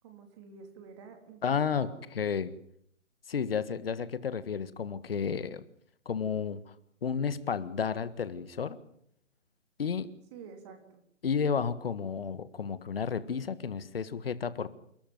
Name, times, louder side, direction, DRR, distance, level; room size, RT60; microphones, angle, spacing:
voice 1, 0.0-2.0 10.3-11.0, right 5 dB, 20° right, 5 dB, 3.4 m, -49 dB
voice 2, 1.4-2.5 3.3-5.6 6.0-6.6 7.0-8.8 9.8-10.1 11.2-14.7, left 6 dB, 50° left, 14 dB, 1.7 m, -32 dB
28.5 x 13.0 x 9.3 m, 0.69 s
hypercardioid pair, 160°, 38 cm